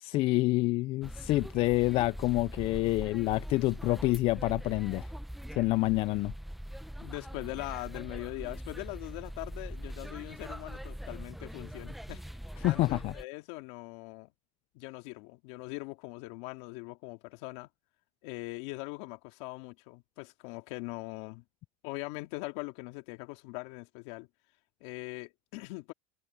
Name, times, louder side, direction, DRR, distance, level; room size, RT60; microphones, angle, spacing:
voice 1, 0.0-5.1 5.5-6.3 12.6-13.1, left 19 dB, 35° left, 0.4 m, -27 dB
sound 1, 1.0-13.2, equal, ahead, 0.7 m, -42 dB
voice 2, 7.0-12.2 12.6-14.3 14.7-17.7 18.2-21.4 21.8-24.3 24.8-25.9, left 24 dB, 55° left, 2.9 m, -41 dB
supercardioid pair, 150°, 17 cm